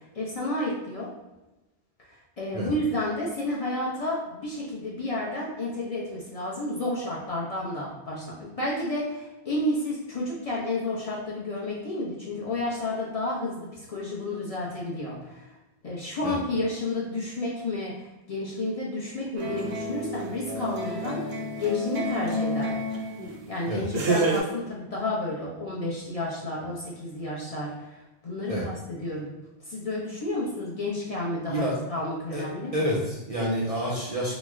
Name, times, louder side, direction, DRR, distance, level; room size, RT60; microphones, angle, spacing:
voice 1, 0.1-1.1 2.1-15.5 15.8-21.2 21.6-22.8 23.5-29.3 29.7-32.7, left 2 dB, 40° left, -6 dB, 0.6 m, -31 dB
sound 1, 19.4-23.4 23.9-24.4, right 1 dB, 75° right, 0.8 m, -29 dB
voice 2, 32.7-34.4, equal, 45° right, -5 dB, 0.5 m, -28 dB
3.0 x 2.1 x 3.5 m, 1.1 s
omnidirectional pair, 1.1 m